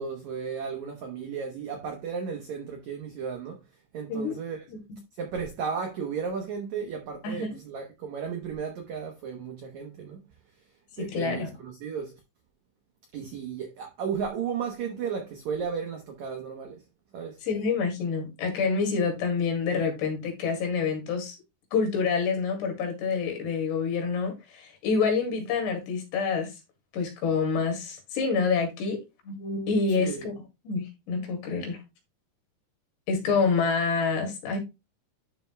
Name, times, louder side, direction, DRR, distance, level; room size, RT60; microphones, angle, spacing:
voice 1, 0.0-3.6 3.9-4.6 5.2-10.2 11.0-12.1 13.1-16.8 17.1-17.4 29.9-30.3, right 6 dB, 80° right, 1.6 m, -34 dB
voice 2, 7.2-7.6 11.0-11.5 17.4-21.4 21.7-26.5 26.9-29.0 29.3-30.3 30.7-31.8 33.1-34.6, left 5 dB, 80° left, 4.2 m, -27 dB
11.5 x 5.6 x 2.2 m
omnidirectional pair, 4.8 m